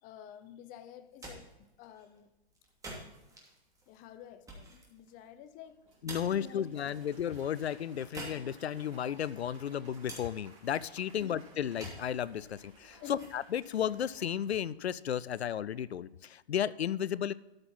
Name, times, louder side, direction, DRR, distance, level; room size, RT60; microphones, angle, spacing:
voice 1, 0.0-2.3 3.9-5.9 6.3-7.1 11.2-11.4 13.0-13.3, left 9 dB, 25° left, 0.7 m, -50 dB
sound 1, 0.9-14.9, right 2 dB, 10° right, 2.8 m, -52 dB
Applause, 5.6-15.2, right 3 dB, 55° right, 4.0 m, -60 dB
voice 2, 6.0-17.3, left 9 dB, 85° left, 0.5 m, -34 dB
13.0 x 5.8 x 5.6 m
figure-of-eight pair, 115°, 31 cm